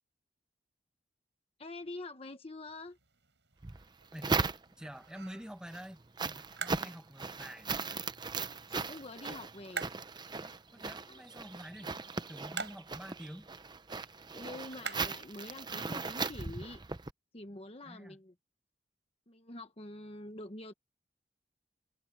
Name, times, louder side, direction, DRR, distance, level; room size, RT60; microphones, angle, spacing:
voice 1, 1.6-3.0 6.7-6.9 8.7-9.9 10.4-11.2 14.3-16.8 17.3-18.3 19.3-20.7, left 2 dB, 35° left, 1.2 m, -46 dB
sound 1, 2.7-15.9, right 5 dB, 85° right, 7.1 m, -49 dB
sound 2, 3.6-5.1 5.5-17.1, right 4 dB, 25° right, 0.8 m, -38 dB
voice 2, 4.8-7.8 10.7-12.0 12.3-13.5 17.9-18.2, equal, 5° right, 1.8 m, -48 dB
head